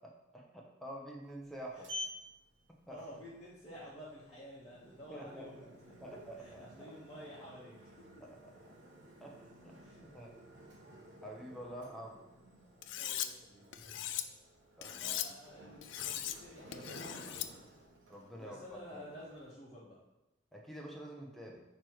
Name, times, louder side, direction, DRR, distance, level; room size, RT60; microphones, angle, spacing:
voice 1, 0.0-1.9 2.9-3.0 5.1-5.5 6.0-6.9 8.2-8.5 9.2-9.8 10.0-10.3 11.2-12.2 14.8-15.4 18.1-19.1 20.5-21.6, right 1 dB, ahead, -1 dB, 0.7 m, -48 dB
Sliding door, 1.2-19.5, left 1 dB, 65° right, 0.9 m, -53 dB
voice 2, 2.9-5.7 6.4-7.9 9.8-10.0 13.0-14.0 15.0-17.1 18.4-20.0, equal, 30° left, -10 dB, 1.3 m, -51 dB
Cutlery silverware, 12.8-13.3 13.7-14.2 14.8-15.3 15.8-16.4 16.7-17.5, left 12 dB, 65° left, 0.3 m, -39 dB
6.6 x 3.1 x 4.5 m, 0.98 s
head